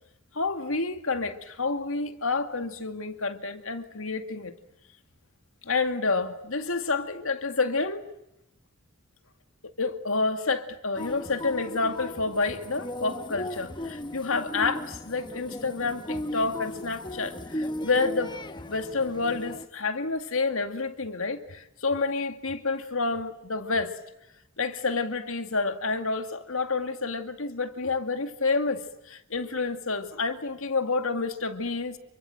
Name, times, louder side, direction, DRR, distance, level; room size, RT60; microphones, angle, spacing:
voice 1, 0.3-4.5 5.7-8.1 9.6-18.3 18.7-24.0 24.6-32.0, left 3 dB, 70° left, 2.2 m, -29 dB
sound 1, 11.0-19.7, left 1 dB, 20° left, 1.1 m, -37 dB
29.0 x 24.5 x 7.8 m
head